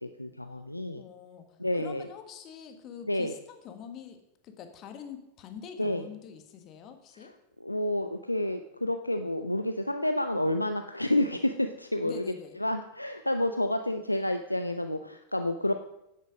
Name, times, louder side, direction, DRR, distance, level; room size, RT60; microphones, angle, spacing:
voice 1, 0.0-1.0 1.6-2.1 3.1-3.3 5.8-6.0 7.2-7.3 7.6-12.2 12.6-15.8, left 1 dB, 85° left, 7 dB, 0.5 m, -29 dB
voice 2, 0.9-7.3 12.0-12.6, left 7 dB, 35° left, 6 dB, 1.5 m, -45 dB
10.5 x 8.2 x 5.0 m, 0.86 s
figure-of-eight pair, 90°, 0 cm